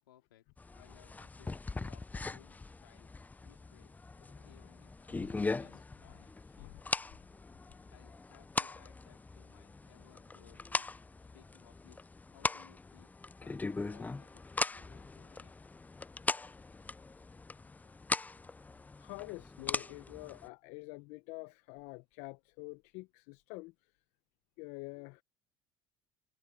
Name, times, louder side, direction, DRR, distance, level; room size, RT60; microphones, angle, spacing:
voice 1, 0.0-3.9 4.4-6.8 7.9-10.9 11.3-12.1 12.3-15.5, left 13 dB, 85° left, 4.0 m, -64 dB
sound 1, 0.6-20.5, left 3 dB, 15° left, 0.4 m, -40 dB
voice 2, 5.1-5.6 6.6-6.8 7.5-7.6 19.0-23.9 24.6-25.2, left 26 dB, 70° left, 0.9 m, -47 dB
hypercardioid pair, 70°, 12 cm